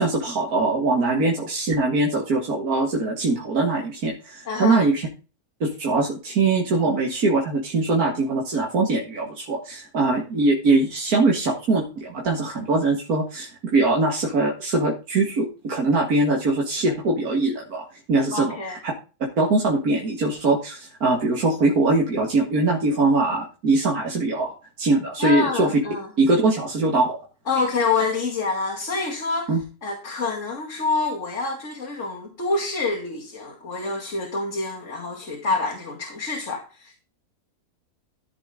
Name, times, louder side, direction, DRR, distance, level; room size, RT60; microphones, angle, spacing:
voice 1, 0.0-5.1 5.6-18.5 18.8-18.9 19.4-24.5 24.8-25.7 26.2-27.2 29.5-29.6, right 3 dB, 75° right, -1 dB, 2.3 m, -22 dB
voice 2, 4.5-4.8 18.3-18.8 25.2-26.1 27.5-29.6 29.8-37.0, left 3 dB, 55° left, -1 dB, 2.7 m, -27 dB
13.5 x 7.3 x 3.8 m, 0.34 s
omnidirectional pair, 1.6 m